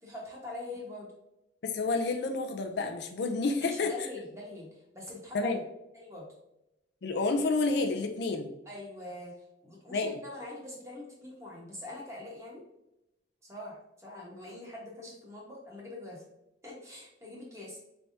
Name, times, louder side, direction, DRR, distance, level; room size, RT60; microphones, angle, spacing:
voice 1, 0.0-1.1 3.6-5.6 5.9-6.3 8.6-12.6 13.4-16.2 16.6-17.8, left 2 dB, 15° right, -3 dB, 1.1 m, -43 dB
voice 2, 1.6-3.9 5.3-5.6 7.0-8.5 9.9-10.1, left 3 dB, 60° left, 5 dB, 0.4 m, -29 dB
4.5 x 3.4 x 2.6 m, 0.89 s
head